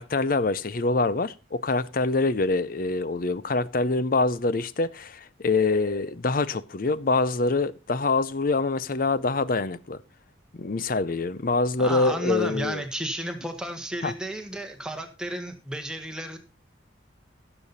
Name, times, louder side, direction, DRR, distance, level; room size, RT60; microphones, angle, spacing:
voice 1, 0.0-10.0 10.5-12.8 14.0-14.1, left 3 dB, 45° left, 0.6 m, -25 dB
voice 2, 11.8-16.4, right 1 dB, 5° right, 1.5 m, -32 dB
15.5 x 7.1 x 4.1 m
head